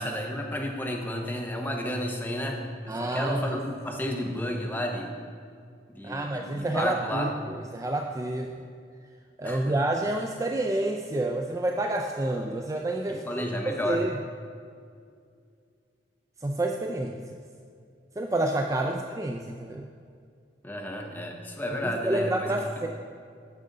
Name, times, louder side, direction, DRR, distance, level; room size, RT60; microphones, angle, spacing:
voice 1, 0.0-5.1 5.9-7.3 9.4-9.7 13.1-14.0 18.8-19.0 20.6-22.6, equal, 10° left, 1 dB, 0.8 m, -32 dB
voice 2, 2.9-3.6 6.0-8.5 9.4-14.2 16.4-17.2 18.2-19.9 21.8-22.9, right 1 dB, 15° right, 2 dB, 0.3 m, -29 dB
9.0 x 6.5 x 3.8 m, 2.2 s
head